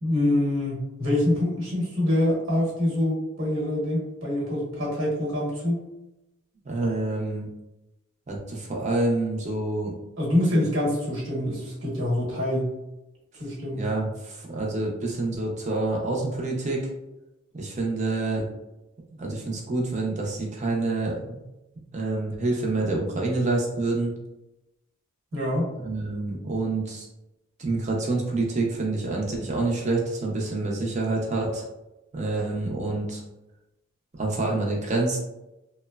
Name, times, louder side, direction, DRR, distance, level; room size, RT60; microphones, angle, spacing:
voice 1, 0.0-5.8 10.2-12.7 13.3-13.9 25.3-25.7, left 1 dB, 60° right, -4 dB, 1.1 m, -25 dB
voice 2, 6.7-7.5 8.3-9.9 13.7-16.9 17.5-18.5 19.2-21.4 21.9-24.1 25.8-27.1 27.6-31.6 32.1-33.2 34.2-35.2, right 2 dB, 35° right, -1 dB, 0.5 m, -27 dB
2.9 x 2.0 x 2.3 m, 0.94 s
head